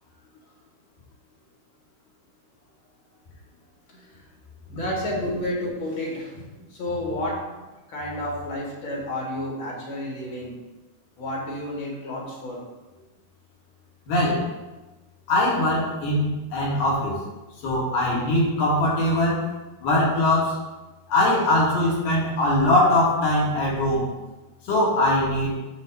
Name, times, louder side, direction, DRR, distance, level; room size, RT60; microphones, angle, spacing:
voice 1, 4.7-6.4 6.7-7.4 7.9-10.5 11.2-12.6, left 1 dB, 80° left, -3 dB, 1.1 m, -30 dB
voice 2, 14.1-14.5 15.3-17.2 17.6-19.5 19.8-20.6 21.1-24.1 24.7-25.5, left 1 dB, 60° left, -5 dB, 3.4 m, -21 dB
9.0 x 3.3 x 6.7 m, 1.1 s
omnidirectional pair, 5.5 m